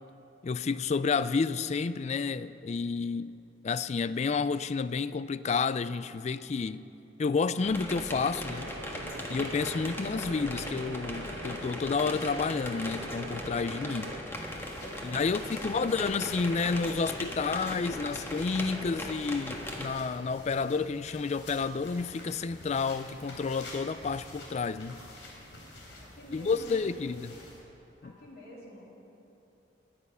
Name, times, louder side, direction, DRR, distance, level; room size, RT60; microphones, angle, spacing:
voice 1, 0.4-3.3 3.6-6.8 7.2-8.7 9.3-14.1 15.0-25.0 26.3-27.3 28.0-28.1, left 4 dB, 35° left, 0.3 m, -30 dB
sound 1, 7.6-19.9, left 1 dB, 15° left, 1.5 m, -38 dB
sound 2, 8.5-14.2, right 2 dB, 75° right, 1.1 m, -43 dB
sound 3, 14.4-27.6, left 1 dB, 80° left, 3.5 m, -49 dB
voice 2, 14.8-16.1 26.1-27.1 28.0-28.9, equal, 55° left, 3.1 m, -47 dB
17.5 x 11.5 x 5.5 m
head